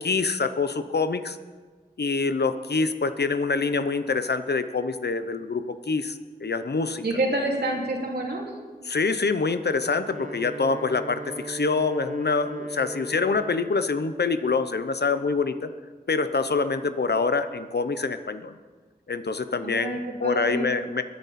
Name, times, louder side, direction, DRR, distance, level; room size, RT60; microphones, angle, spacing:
voice 1, 0.0-1.4 2.0-7.0 8.9-15.7 16.1-18.6 19.1-21.0, left 4 dB, 85° left, 10 dB, 0.8 m, -26 dB
voice 2, 7.0-8.5 19.6-20.7, right 1 dB, 85° right, -1 dB, 2.9 m, -28 dB
Wind instrument woodwind instrument, 9.7-13.9, right 2 dB, 50° right, 1.0 m, -38 dB
22.0 x 10.5 x 4.3 m, 1.4 s
wide cardioid pair, 65°, 17 cm